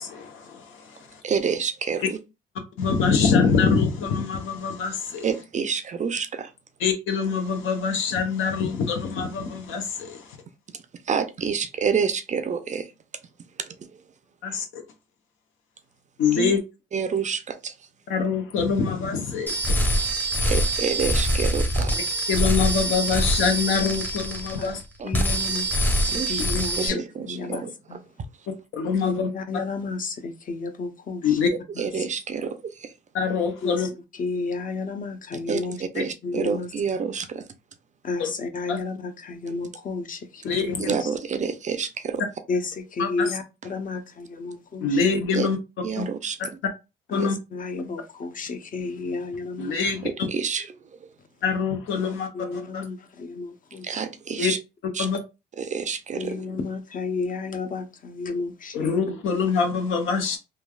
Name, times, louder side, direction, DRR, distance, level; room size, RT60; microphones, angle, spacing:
voice 1, 0.0-1.2 2.8-5.3 6.8-10.4 14.4-14.8 16.2-16.6 18.1-20.1 22.3-24.8 28.7-29.3 31.2-31.5 33.1-33.9 36.0-36.1 38.2-38.3 38.7-38.8 40.4-40.9 43.0-43.4 44.8-45.6 46.0-46.1 47.1-47.4 49.6-50.3 51.4-52.8 54.4-54.5 55.0-55.2 58.7-60.4, left 5 dB, 80° left, 0.8 m, -25 dB
voice 2, 1.2-2.1 5.2-6.5 11.1-12.9 13.6-13.7 16.4-16.5 16.9-17.7 20.4-22.0 25.0-25.1 26.1-26.4 26.8-28.0 31.5-32.9 35.5-37.5 39.5-39.6 40.8-42.2 45.3-45.5 45.8-46.4 47.2-47.3 50.0-50.7 51.0-51.1 53.8-54.6 54.9-55.1 55.6-56.4, right 6 dB, 40° right, 0.4 m, -28 dB
sound 1, 19.5-24.8 25.1-26.9, equal, 10° left, 0.7 m, -24 dB
voice 3, 25.0-27.6 27.9-28.0 29.0-31.4 31.8-32.1 33.6-33.9 34.2-35.8 36.2-36.7 38.0-41.1 42.5-45.0 47.1-49.7 52.0-53.9 56.1-59.0, left 4 dB, 45° left, 0.7 m, -32 dB
3.3 x 2.3 x 2.3 m
cardioid pair, 90°, 20 cm